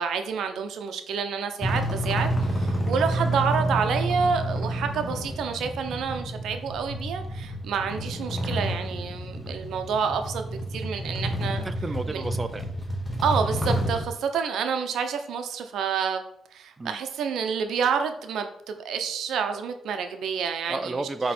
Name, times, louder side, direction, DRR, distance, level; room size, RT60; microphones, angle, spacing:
voice 1, 0.0-11.7 12.1-12.3 13.2-16.2 16.5-21.1, right 6 dB, 75° right, 7 dB, 0.7 m, -28 dB
sound 1, 1.6-14.1, right 1 dB, 10° left, 1.3 m, -29 dB
voice 2, 11.6-12.7 16.8-17.0 20.7-21.3, right 3 dB, 20° right, 9 dB, 0.4 m, -31 dB
8.4 x 3.2 x 4.3 m, 0.70 s
cardioid pair, 90°, 0 cm